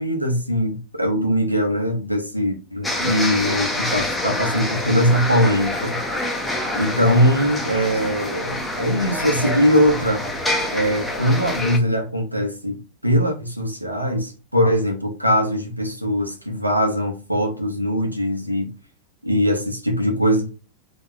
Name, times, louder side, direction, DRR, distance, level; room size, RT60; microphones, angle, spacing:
voice 1, 0.0-6.0 6.7-10.3 10.7-18.7 19.2-20.5, equal, 90° right, 1.0 m, -21 dB
sound 1, 2.8-11.8, left 1 dB, 5° left, 1.0 m, -26 dB
3.9 x 2.9 x 4.1 m
figure-of-eight pair, 90°, 0 cm